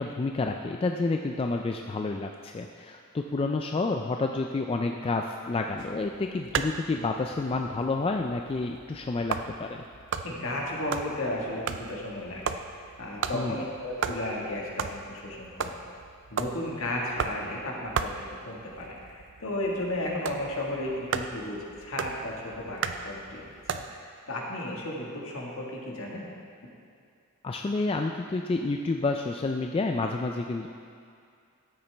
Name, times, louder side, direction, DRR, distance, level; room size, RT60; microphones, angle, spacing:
voice 1, 0.0-9.8 13.3-13.6 27.4-30.7, left 3 dB, 25° left, 3 dB, 0.3 m, -29 dB
sound 1, 5.8-24.0, right 6 dB, 55° right, 0.4 m, -36 dB
voice 2, 10.2-15.8 16.3-23.4 23.7-26.3, left 1 dB, 65° left, -2 dB, 1.6 m, -34 dB
12.5 x 8.8 x 3.4 m, 2.3 s
head